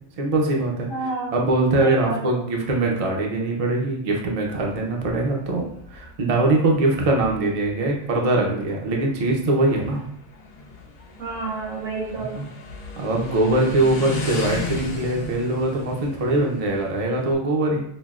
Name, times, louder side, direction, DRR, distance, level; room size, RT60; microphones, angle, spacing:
voice 1, 0.2-0.9 1.3-5.6 5.9-10.0 12.2-12.4 13.0-17.8, right 2 dB, 45° right, -1 dB, 0.4 m, -22 dB
voice 2, 0.9-1.4 1.8-2.4 11.2-12.4 16.3-16.5 17.0-17.1, right 3 dB, 80° right, -3 dB, 1.5 m, -30 dB
Motorcycle, 4.4-17.3, left 3 dB, 90° left, 1.2 m, -36 dB
5.9 x 2.1 x 2.4 m, 0.71 s
omnidirectional pair, 1.4 m